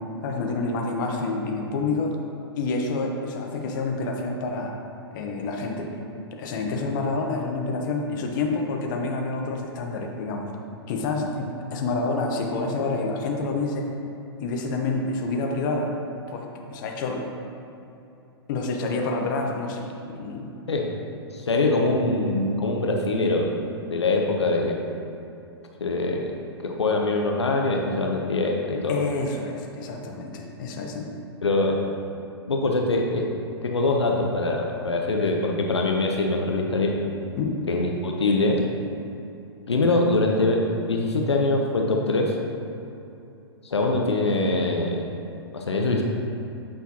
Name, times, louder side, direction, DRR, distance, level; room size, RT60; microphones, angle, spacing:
voice 1, 0.2-2.2 2.6-4.7 5.1-6.0 6.3-10.5 10.9-13.9 14.4-15.9 16.3-17.2 18.5-20.5 28.9-31.1 37.4-37.6, left 3 dB, 45° left, 1 dB, 1.0 m, -28 dB
voice 2, 21.3-23.5 23.9-24.8 25.8-26.3 26.6-29.0 31.4-31.8 32.5-33.3 33.6-36.9 37.7-38.6 39.7-42.3 43.6-45.0 45.5-46.0, left 2 dB, 85° left, 1 dB, 0.8 m, -23 dB
8.7 x 5.6 x 2.9 m, 2.8 s
hypercardioid pair, 115°, 14 cm